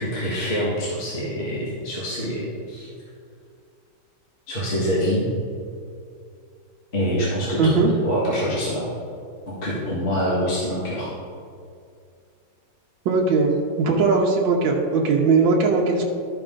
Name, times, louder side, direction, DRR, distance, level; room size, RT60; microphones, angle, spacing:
voice 1, 0.0-2.9 4.5-5.2 6.9-8.9 9.5-11.1, equal, 30° left, -7 dB, 1.9 m, -25 dB
voice 2, 7.6-7.9 13.0-16.0, right 4 dB, 70° right, -1 dB, 1.6 m, -19 dB
13.0 x 5.3 x 3.8 m, 2.4 s
omnidirectional pair, 2.2 m